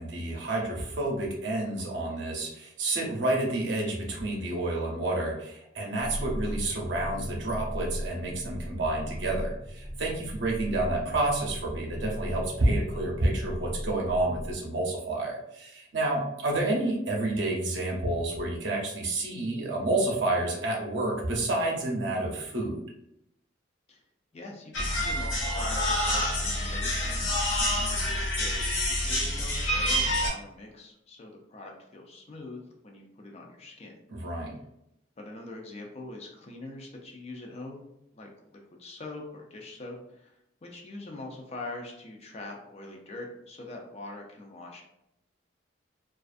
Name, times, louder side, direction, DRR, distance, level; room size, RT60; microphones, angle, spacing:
voice 1, 0.0-22.8 34.1-34.6, right 2 dB, 65° right, -1 dB, 0.6 m, -29 dB
sound 1, 6.0-14.5, equal, 15° right, 0.6 m, -37 dB
voice 2, 24.3-34.0 35.2-37.8 38.1-40.3 40.6-44.8, left 2 dB, 35° left, 1 dB, 0.4 m, -43 dB
sound 2, 24.7-30.3, left 1 dB, 80° left, 0.8 m, -27 dB
2.4 x 2.3 x 2.4 m, 0.80 s
head